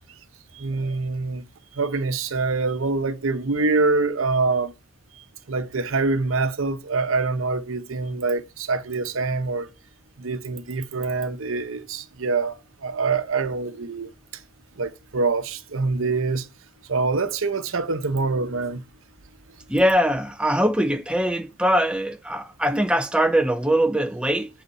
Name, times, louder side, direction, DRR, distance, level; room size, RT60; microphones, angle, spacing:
voice 1, 0.5-1.4 1.7-4.7 5.1-9.7 10.2-14.4 14.8-16.5 16.9-18.8, right 3 dB, 75° right, 0.8 m, -25 dB
voice 2, 19.7-24.5, equal, 5° right, 0.4 m, -22 dB
8.1 x 4.2 x 5.5 m
head